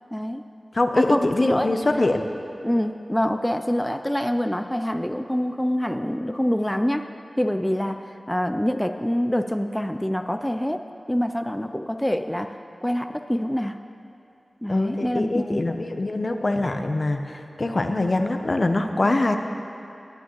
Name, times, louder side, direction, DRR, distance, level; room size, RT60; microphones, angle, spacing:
voice 1, 0.1-0.4 1.0-1.7 2.6-7.1 7.4-13.8 14.6-15.6, equal, 10° left, 7 dB, 0.4 m, -25 dB
voice 2, 0.7-2.3 14.7-19.4, left 2 dB, 55° left, 6 dB, 0.7 m, -23 dB
19.0 x 8.9 x 3.1 m, 2.6 s
cardioid pair, 45°, 0 cm